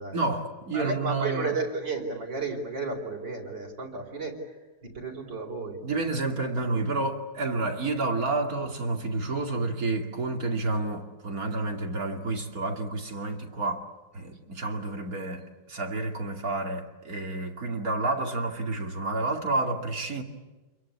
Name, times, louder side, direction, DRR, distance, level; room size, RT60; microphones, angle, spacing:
voice 1, 0.1-1.6 5.8-20.2, right 2 dB, 45° right, 2.9 m, -30 dB
voice 2, 0.7-4.3 4.9-5.8, right 3 dB, 60° right, 5.5 m, -32 dB
29.0 x 22.5 x 8.7 m
omnidirectional pair, 2.2 m